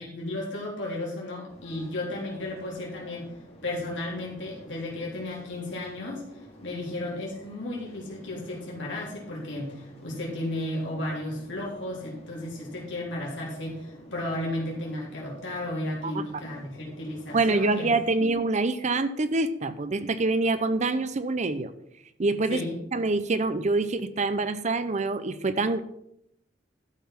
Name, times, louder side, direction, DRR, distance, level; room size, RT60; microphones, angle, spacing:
voice 1, 0.0-3.3 3.6-17.9 18.2-18.3 22.5-22.7, left 1 dB, 70° left, -3 dB, 3.4 m, -34 dB
sound 1, 1.5-18.1, equal, 35° left, 2.3 m, -50 dB
voice 2, 17.3-21.7 22.2-25.8, right 3 dB, 40° right, 12 dB, 0.6 m, -26 dB
12.5 x 5.7 x 5.8 m, 0.77 s
head